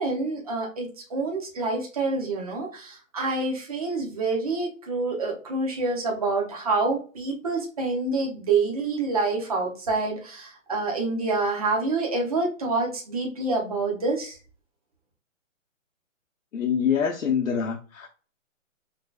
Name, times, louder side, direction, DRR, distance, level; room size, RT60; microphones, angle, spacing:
voice 1, 0.0-14.4, right 3 dB, 25° right, 0 dB, 0.9 m, -27 dB
voice 2, 16.5-18.1, left 7 dB, 75° left, 0 dB, 0.9 m, -25 dB
5.3 x 3.1 x 2.4 m, 0.37 s
hypercardioid pair, 170°, 41 cm